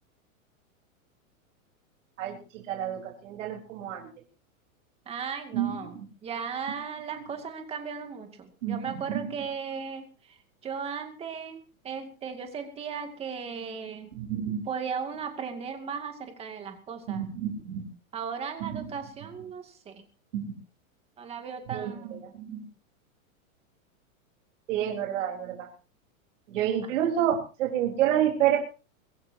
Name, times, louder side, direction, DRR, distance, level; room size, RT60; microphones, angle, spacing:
voice 1, 2.2-4.1 5.5-6.0 8.6-9.3 14.2-14.6 17.1-17.8 18.6-18.8 20.3-20.5 21.7-22.6 24.7-25.7 26.5-28.6, right 10 dB, 60° right, 0 dB, 4.0 m, -29 dB
voice 2, 5.1-5.9 6.2-10.4 10.6-14.1 14.7-17.3 18.1-20.0 21.2-22.2, right 6 dB, 15° right, 5 dB, 2.2 m, -36 dB
23.5 x 16.0 x 2.8 m, 0.34 s
supercardioid pair, 170°, 41 cm